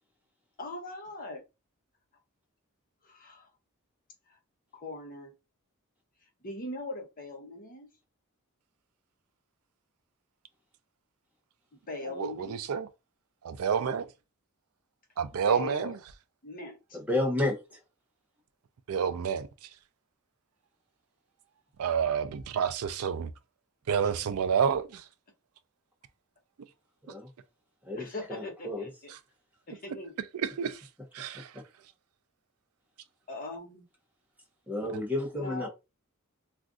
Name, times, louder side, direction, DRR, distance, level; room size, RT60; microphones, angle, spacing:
voice 1, 0.6-1.4 3.0-3.5 4.3-4.4 4.7-5.3 6.4-7.9 11.7-12.6 15.3-16.0 16.4-16.8 24.0-24.1 28.0-29.1 29.7-30.2 33.3-33.8 35.3-35.7, left 2 dB, 40° left, 0.8 m, -40 dB
voice 2, 12.0-12.9 13.4-14.1 15.2-15.9 18.9-19.7 21.8-23.3 23.9-25.0 30.3-30.8 31.1-31.5, right 7 dB, 80° right, 0.4 m, -29 dB
voice 3, 17.1-17.8 27.1-27.3 27.9-28.9 34.7-35.7, left 2 dB, 5° right, 0.8 m, -31 dB
2.5 x 2.4 x 3.7 m
head